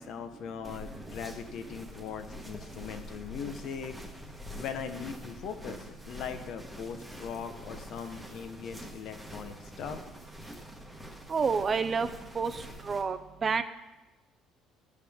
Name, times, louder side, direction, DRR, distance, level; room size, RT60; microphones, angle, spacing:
voice 1, 0.0-3.9 4.6-10.0, left 7 dB, 60° left, 8 dB, 0.7 m, -40 dB
sound 1, 0.6-13.0, equal, 5° right, 1.2 m, -46 dB
voice 2, 11.3-12.1 12.3-13.6, right 5 dB, 30° right, 11 dB, 0.4 m, -29 dB
12.5 x 4.9 x 3.5 m, 1.1 s
cardioid pair, 130°, 0 cm